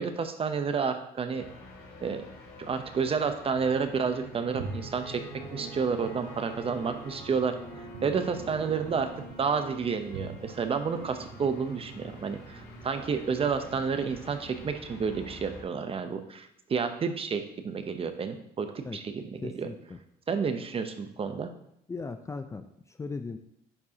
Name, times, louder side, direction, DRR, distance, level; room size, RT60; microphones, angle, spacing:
voice 1, 0.0-1.4 2.0-2.2 2.6-5.2 5.5-7.5 8.0-9.1 9.4-19.7 20.3-21.5, right 5 dB, 35° right, 8 dB, 0.8 m, -30 dB
sound 1, 1.3-15.6, left 1 dB, 60° left, 2.3 m, -47 dB
sound 2, 4.5-14.7, right 4 dB, 90° right, 1.0 m, -45 dB
voice 2, 19.4-20.0 21.9-23.4, left 4 dB, 15° left, 7 dB, 0.4 m, -38 dB
11.0 x 4.6 x 2.9 m, 0.76 s
cardioid pair, 110°, 17 cm